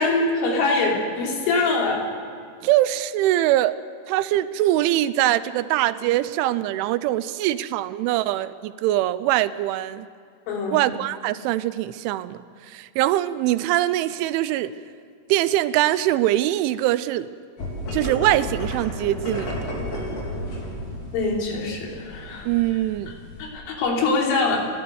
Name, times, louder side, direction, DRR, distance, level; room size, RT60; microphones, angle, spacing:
voice 1, 0.0-2.0 10.5-10.8 21.1-22.5 23.4-24.6, left 3 dB, 80° left, -1 dB, 5.7 m, -23 dB
voice 2, 2.6-3.8 4.1-10.1 10.7-14.7 15.3-17.3 17.9-19.7 22.5-23.2, right 14 dB, 85° right, 14 dB, 3.0 m, -23 dB
sound 1, 17.6-23.5, equal, 50° left, 5.8 m, -32 dB
30.0 x 12.5 x 8.0 m, 2.3 s
omnidirectional pair, 5.5 m